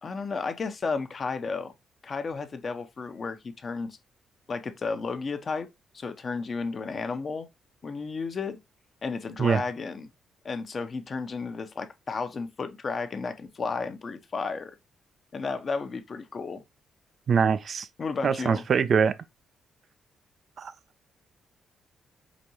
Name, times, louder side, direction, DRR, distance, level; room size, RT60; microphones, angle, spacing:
voice 1, 0.0-1.7 2.0-4.0 4.5-5.7 5.9-7.5 7.8-8.6 9.0-10.1 10.4-14.7 15.3-16.6 18.0-18.6, left 4 dB, 50° left, 0.8 m, -33 dB
voice 2, 17.3-17.9 18.2-19.1 20.6-20.7, right 6 dB, 60° right, 0.4 m, -23 dB
5.1 x 2.6 x 2.9 m
supercardioid pair, 60°, 0 cm